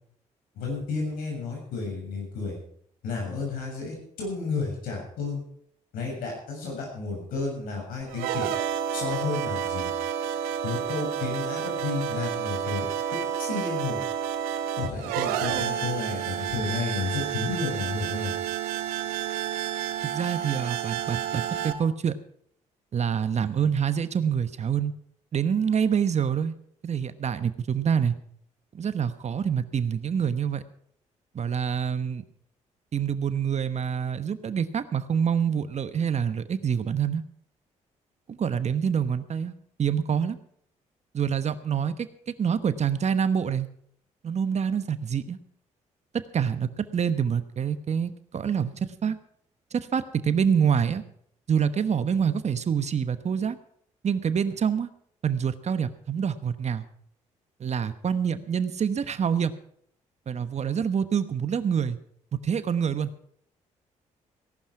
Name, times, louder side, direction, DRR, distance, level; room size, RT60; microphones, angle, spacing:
voice 1, 0.6-2.6 3.0-5.4 5.9-8.5 8.9-9.9 10.6-14.0 14.8-18.3, left 4 dB, 80° left, 0 dB, 7.0 m, -32 dB
sound 1, 8.0-21.7, right 9 dB, 90° right, 1.0 m, -30 dB
voice 2, 20.0-22.2 22.9-24.9 25.3-26.5 26.8-28.1 28.7-30.6 31.3-32.2 32.9-37.2 38.3-39.5 39.8-40.4 41.1-43.7 44.2-45.4 46.3-49.2 49.7-51.0 51.5-53.6 54.0-54.9 55.2-56.9 57.6-59.5 60.3-62.0 62.3-63.1, right 7 dB, 50° right, 12 dB, 1.1 m, -26 dB
17.5 x 11.5 x 4.8 m, 0.65 s
supercardioid pair, 60°, 15 cm